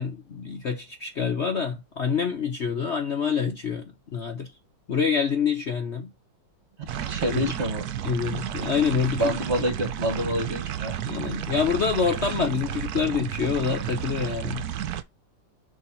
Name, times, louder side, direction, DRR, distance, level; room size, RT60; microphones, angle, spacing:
voice 1, 0.0-4.5 4.9-6.1 7.3-7.5 8.0-9.6 11.0-14.6, left 6 dB, 50° left, 1.0 m, -26 dB
voice 2, 6.9-7.9 9.2-11.0, equal, 40° right, 1.6 m, -27 dB
sound 1, 6.9-15.0, right 10 dB, 65° right, 1.0 m, -32 dB
7.1 x 3.2 x 5.3 m
omnidirectional pair, 2.0 m